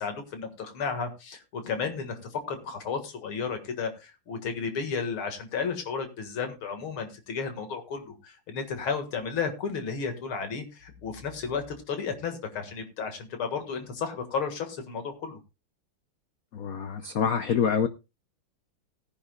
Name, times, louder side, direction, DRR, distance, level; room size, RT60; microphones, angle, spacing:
voice 1, 0.0-15.4, left 5 dB, 75° left, 7 dB, 2.6 m, -33 dB
voice 2, 16.5-17.9, left 7 dB, 90° left, 10 dB, 0.7 m, -26 dB
18.0 x 10.0 x 2.3 m, 0.26 s
omnidirectional pair, 2.4 m